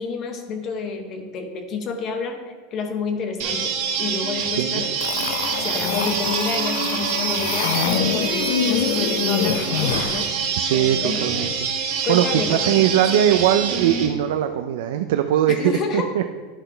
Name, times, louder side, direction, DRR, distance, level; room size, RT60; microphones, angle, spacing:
voice 1, 0.0-2.4 2.7-4.9 5.6-10.3 10.7-11.2 12.0-13.3 15.5-16.1, left 5 dB, 35° left, 6 dB, 0.9 m, -29 dB
sound 1, 3.4-14.1, right 6 dB, 60° right, 1.4 m, -26 dB
sound 2, 5.0-10.3, left 9 dB, 75° left, 0.5 m, -25 dB
voice 2, 10.5-11.7 12.1-16.3, right 11 dB, 75° right, 7 dB, 0.4 m, -21 dB
11.0 x 6.0 x 3.3 m, 1.4 s
supercardioid pair, 155°, 0 cm